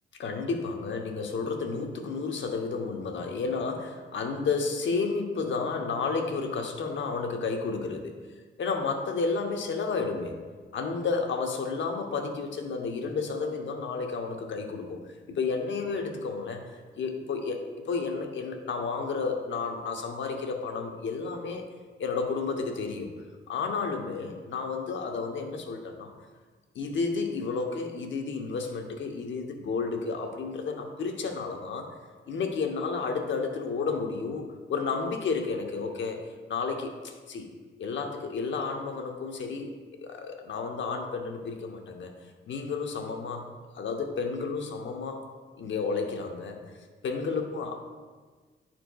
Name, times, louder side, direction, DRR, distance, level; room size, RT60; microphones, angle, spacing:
voice 1, 0.2-8.2 8.6-10.4 10.7-16.6 17.0-21.6 22.0-23.1 23.5-26.1 26.7-31.9 32.3-37.5 37.8-39.7 40.0-42.1 42.5-43.5 43.7-45.2 45.5-46.6 47.0-47.8, left 4 dB, 75° left, 3 dB, 0.9 m, -31 dB
11.5 x 4.4 x 2.3 m, 1.4 s
cardioid pair, 75°, 20 cm